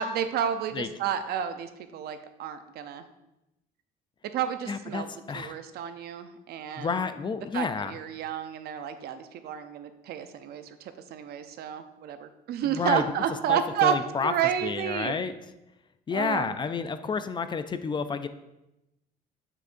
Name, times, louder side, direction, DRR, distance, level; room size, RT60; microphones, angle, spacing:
voice 1, 0.0-3.0 4.3-5.1 5.3-6.9 7.5-13.9 14.2-15.1 16.1-16.5, right 9 dB, 70° right, 9 dB, 0.6 m, -30 dB
voice 2, 4.7-5.6 6.8-8.0 12.6-13.0 13.5-14.3 14.6-15.3 16.1-18.3, left 5 dB, 25° left, 10 dB, 0.4 m, -30 dB
7.6 x 6.2 x 2.6 m, 0.92 s
cardioid pair, 110°, 17 cm